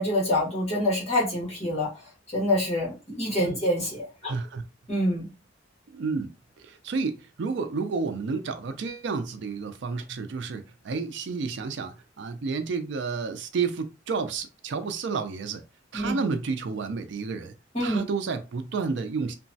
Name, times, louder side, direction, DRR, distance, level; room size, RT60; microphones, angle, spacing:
voice 1, 0.0-1.9 2.3-4.3 4.9-5.3 15.9-16.1 17.7-18.0, left 1 dB, 35° left, 1.4 m, -26 dB
voice 2, 4.2-4.6 5.9-6.3 6.6-15.6 15.9-17.5 17.8-19.3, right 4 dB, 70° right, 0.4 m, -31 dB
2.9 x 2.2 x 2.6 m
head